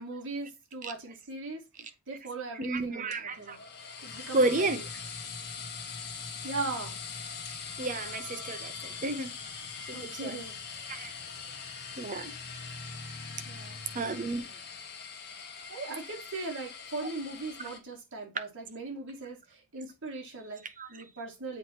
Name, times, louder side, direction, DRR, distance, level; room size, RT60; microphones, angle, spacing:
voice 1, 0.0-3.6 4.0-4.8 6.4-7.0 9.9-10.6 13.5-13.8 15.7-21.6, right 3 dB, 60° right, 1.8 m, -39 dB
voice 2, 2.5-3.6 4.3-4.8 7.8-9.3 9.9-10.4 10.9-11.1 12.0-12.3 13.9-14.5 20.8-20.9, right 2 dB, 35° right, 0.7 m, -31 dB
sound 1, 3.1-17.8, left 5 dB, 50° left, 1.1 m, -42 dB
7.8 x 3.0 x 4.2 m
head